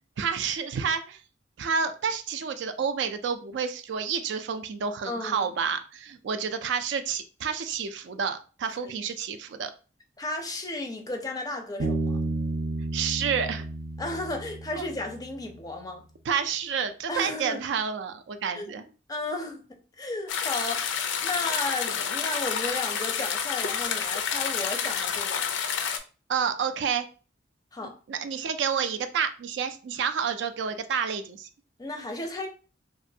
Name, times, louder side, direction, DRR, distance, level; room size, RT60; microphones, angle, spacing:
voice 1, 0.2-1.2 1.6-9.7 12.9-13.7 14.7-14.8 16.3-18.8 26.3-27.0 28.1-31.5, right 6 dB, 70° right, 0.3 m, -29 dB
voice 2, 5.1-5.4 8.8-8.9 10.2-12.2 14.0-16.1 17.1-17.6 18.5-19.6 20.0-25.5 27.7-27.9 31.8-32.5, left 2 dB, 20° left, 0.5 m, -34 dB
Bass guitar, 11.8-15.3, right 2 dB, 85° right, 0.7 m, -31 dB
sound 1, 20.3-26.0, left 7 dB, 80° left, 0.4 m, -29 dB
3.0 x 2.5 x 2.6 m
head